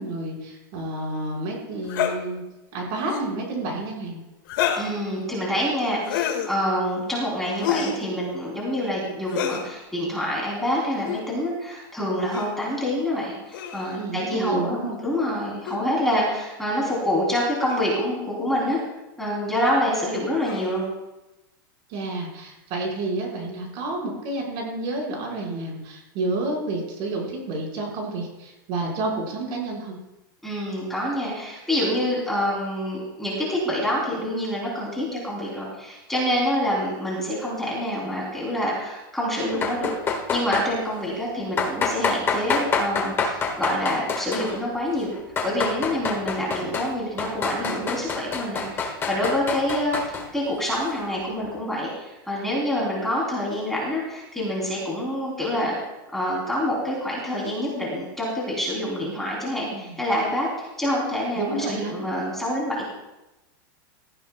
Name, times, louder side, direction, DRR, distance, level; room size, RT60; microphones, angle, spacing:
voice 1, 0.0-2.4 2.7-4.2 14.0-15.0 21.9-30.0 59.7-60.0 61.3-62.0, right 2 dB, 45° right, -1 dB, 4.9 m, -30 dB
sound 1, 1.9-2.1 3.0-3.3 4.5-4.9 6.0-6.5 7.6-8.0 9.3-9.7 11.0-11.2 12.3-12.5 13.5-14.0 15.6-15.8 16.8-17.0 17.6-17.9 18.7-18.9 20.4-20.8, left 9 dB, 65° left, 1.9 m, -28 dB
voice 2, 4.7-18.8 19.2-20.8 30.4-45.1 45.4-55.7 56.1-62.9, equal, 5° left, -5 dB, 3.4 m, -26 dB
sound 2, 39.5-40.7 41.6-44.6 45.1-46.9 47.2-50.3, left 4 dB, 20° left, 1.7 m, -26 dB
18.0 x 14.0 x 2.3 m, 0.99 s
supercardioid pair, 150°, 12 cm